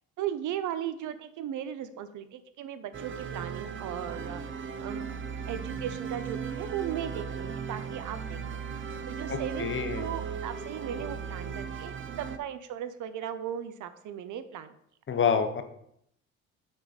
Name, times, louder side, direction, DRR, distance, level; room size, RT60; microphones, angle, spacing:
voice 1, 0.2-5.0 5.4-8.6 9.1-9.7 9.9-14.7, right 10 dB, 80° right, 12 dB, 0.7 m, -37 dB
sound 1, 2.9-12.4, right 6 dB, 40° right, 0.7 m, -37 dB
voice 2, 9.3-10.1 15.1-15.6, left 6 dB, 40° left, 7 dB, 1.0 m, -27 dB
6.4 x 6.2 x 4.1 m, 0.73 s
cardioid pair, 90°, 30 cm